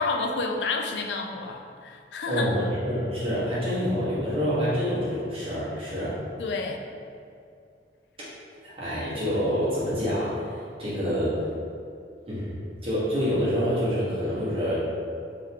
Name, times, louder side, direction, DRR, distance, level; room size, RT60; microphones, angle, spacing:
voice 1, 0.0-2.5 6.4-6.8, left 3 dB, 75° left, 3 dB, 0.4 m, -29 dB
voice 2, 2.3-6.2 8.6-11.4 12.3-14.8, equal, 30° right, -9 dB, 1.2 m, -27 dB
3.6 x 2.9 x 3.6 m, 2.4 s
head